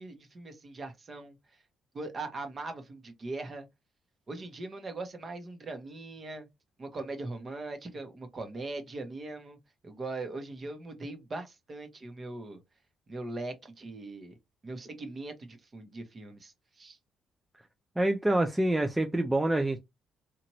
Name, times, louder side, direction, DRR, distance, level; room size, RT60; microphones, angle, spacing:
voice 1, 0.0-1.3 1.9-3.7 4.3-6.5 6.8-9.6 9.8-12.6 13.1-14.3 14.6-17.0, right 2 dB, 35° right, 0.9 m, -40 dB
voice 2, 18.0-19.8, right 1 dB, 10° right, 0.4 m, -26 dB
3.0 x 2.5 x 2.9 m
cardioid pair, 95°, 0 cm